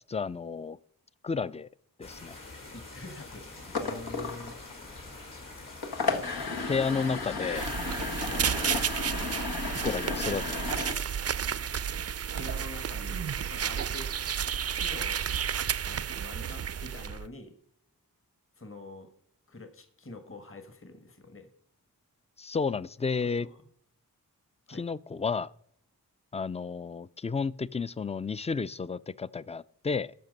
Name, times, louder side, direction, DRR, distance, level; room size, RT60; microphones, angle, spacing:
voice 1, 0.1-0.8 1.2-1.7 2.0-2.4 6.5-7.7 8.3-8.8 9.8-10.9 22.4-23.5 24.8-25.5 26.3-30.1, left 5 dB, 20° left, 0.3 m, -32 dB
sound 1, 2.0-9.4, left 2 dB, 60° left, 3.3 m, -46 dB
voice 2, 2.6-4.6 8.2-8.5 12.3-14.1 14.7-15.2 15.8-17.6 18.6-19.1 19.5-21.5 23.4-23.6 24.7-24.9, left 2 dB, 35° left, 1.4 m, -46 dB
sound 2, 3.6-10.9, left 4 dB, 85° left, 1.5 m, -34 dB
sound 3, 7.5-17.3, right 8 dB, 45° right, 0.4 m, -32 dB
13.5 x 6.0 x 5.3 m
cardioid pair, 45°, 36 cm